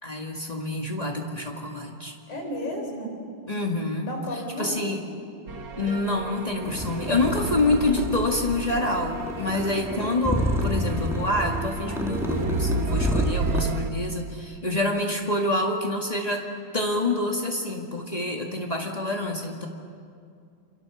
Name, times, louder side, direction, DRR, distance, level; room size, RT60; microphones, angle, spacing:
voice 1, 0.0-2.1 3.5-4.1 4.6-5.0 5.8-16.4 16.7-19.7, left 2 dB, 70° left, 0 dB, 0.4 m, -27 dB
voice 2, 2.3-3.2 4.0-4.8, equal, 50° left, 1 dB, 5.8 m, -33 dB
sound 1, 5.5-13.9, right 4 dB, 50° right, 1.6 m, -33 dB
sound 2, 6.6-13.7, equal, 5° right, 0.5 m, -30 dB
30.0 x 26.5 x 7.1 m, 2.4 s
omnidirectional pair, 4.3 m